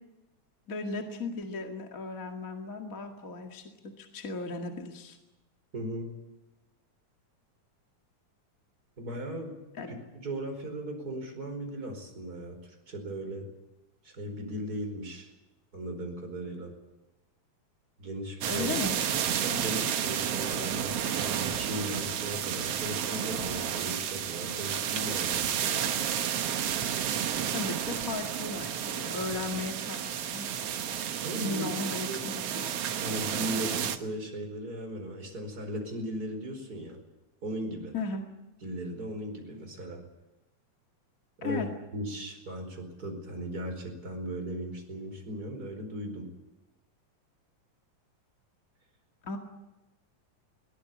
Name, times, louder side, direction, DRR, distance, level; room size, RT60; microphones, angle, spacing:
voice 1, 0.7-3.7 4.0-5.2 9.8-9.9 18.5-19.0 27.4-30.5 31.4-32.8 37.9-38.2 41.4-41.7 49.2-49.4, left 3 dB, 30° left, 3 dB, 2.2 m, -36 dB
voice 2, 5.7-6.2 9.0-9.6 9.9-13.5 14.0-15.3 15.7-16.7 18.0-18.7 19.2-25.6 31.2-31.6 32.1-32.2 33.0-37.0 37.4-37.9 38.6-40.0 41.4-41.7 41.9-46.3, right 1 dB, 30° right, 4 dB, 5.2 m, -37 dB
sound 1, 18.4-34.0, right 9 dB, 60° right, 2.0 m, -31 dB
22.0 x 18.5 x 8.7 m, 1.0 s
omnidirectional pair, 3.5 m